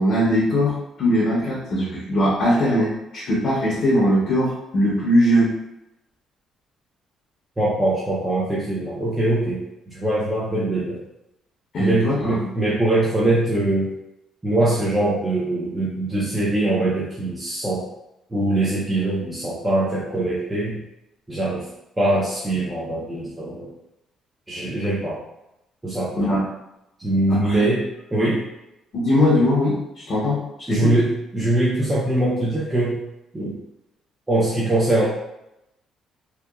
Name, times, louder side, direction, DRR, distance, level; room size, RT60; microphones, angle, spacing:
voice 1, 0.0-5.5 11.7-12.2 26.2-26.4 27.3-27.6 28.9-30.9, equal, 45° left, -6 dB, 0.7 m, -20 dB
voice 2, 7.6-11.0 11.8-13.9 14.4-17.8 18.3-20.8 21.3-21.7 22.0-23.7 24.5-25.2 25.8-26.3 27.0-27.9 28.1-28.4 30.7-33.0 33.3-33.6 34.3-35.1, right 1 dB, 10° right, -8 dB, 0.5 m, -22 dB
2.8 x 2.2 x 2.3 m, 0.88 s
cardioid pair, 155°, 0 cm